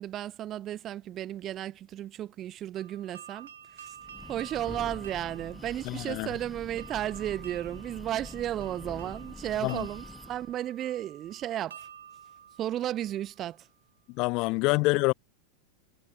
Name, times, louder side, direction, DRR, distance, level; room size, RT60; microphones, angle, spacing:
voice 1, 0.0-3.5 3.8-3.9 4.3-11.9 12.6-13.7 14.5-14.6, right 12 dB, 30° right, 0.7 m, -34 dB
sound 1, 2.8-13.6, right 8 dB, 65° right, 0.7 m, -50 dB
Breathing, 3.9-10.5, left 3 dB, 10° left, 1.2 m, -46 dB
voice 2, 5.8-6.3 9.6-9.9 14.1-15.1, left 26 dB, 40° left, 0.4 m, -26 dB
figure-of-eight pair, 90°, 0 cm